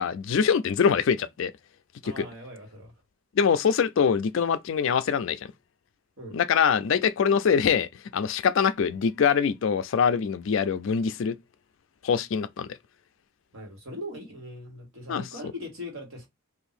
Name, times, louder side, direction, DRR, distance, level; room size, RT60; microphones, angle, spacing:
voice 1, 0.0-1.5 2.0-2.3 3.4-5.4 6.3-11.4 12.0-12.7 15.1-15.3, left 6 dB, 60° left, 0.3 m, -24 dB
voice 2, 2.0-2.9 6.2-6.4 13.5-16.3, left 1 dB, 65° right, 1.6 m, -40 dB
2.7 x 2.6 x 4.0 m
head